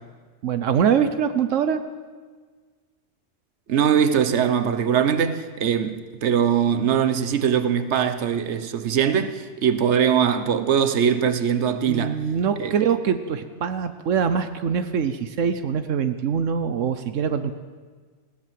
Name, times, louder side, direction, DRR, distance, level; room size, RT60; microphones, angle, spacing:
voice 1, 0.4-1.8 11.8-17.5, right 7 dB, 85° right, 1.2 m, -23 dB
voice 2, 3.7-12.2 12.6-12.7, right 8 dB, 65° right, 1.3 m, -21 dB
20.0 x 17.0 x 7.6 m
omnidirectional pair, 1.3 m